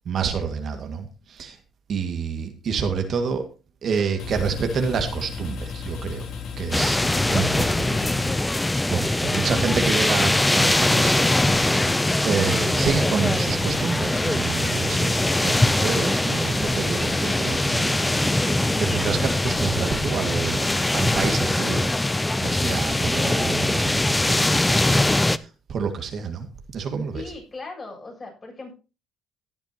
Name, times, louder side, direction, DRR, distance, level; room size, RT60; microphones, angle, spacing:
voice 1, 0.1-1.6 1.9-3.5 3.8-6.2 6.6-7.0 7.3-8.1 8.9-11.8 12.2-18.1 18.8-20.6 20.9-22.1 22.4-25.4 25.7-26.5 26.7-27.2, right 6 dB, 55° right, 5 dB, 1.9 m, -28 dB
sound 1, 3.9-9.1, left 6 dB, 70° left, 3.0 m, -35 dB
sound 2, 6.7-25.4, left 1 dB, 10° left, 0.5 m, -22 dB
sound 3, 10.7-21.3, right 11 dB, 85° right, 0.7 m, -39 dB
voice 2, 27.1-28.7, left 3 dB, 30° left, 0 dB, 7.2 m, -38 dB
17.0 x 8.9 x 2.9 m, 0.31 s
cardioid pair, 90°, 0 cm